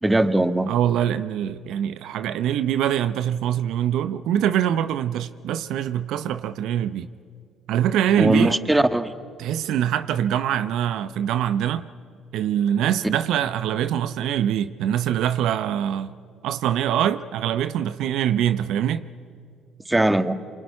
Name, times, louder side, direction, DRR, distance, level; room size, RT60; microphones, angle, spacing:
voice 1, 0.0-0.7 8.2-9.1 19.9-20.3, right 1 dB, 10° right, 1.5 m, -19 dB
voice 2, 0.7-7.1 7.7-8.5 9.4-11.9 12.3-16.1 16.4-19.0, right 10 dB, 70° right, 0.7 m, -24 dB
27.0 x 22.5 x 9.7 m
supercardioid pair, 65°, 0 cm